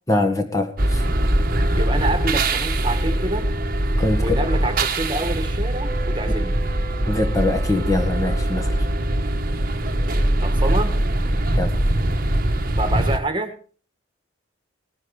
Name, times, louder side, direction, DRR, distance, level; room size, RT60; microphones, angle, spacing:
voice 1, 0.1-1.0 4.0-4.3 7.1-8.9 11.5-11.7, left 2 dB, 15° left, 4 dB, 1.6 m, -23 dB
sound 1, 0.8-13.2, right 1 dB, 45° right, 1.3 m, -22 dB
voice 2, 1.7-3.5 4.2-6.6 10.4-10.9 12.8-13.6, right 2 dB, 25° right, 7 dB, 1.7 m, -27 dB
18.5 x 9.7 x 4.9 m, 0.41 s
head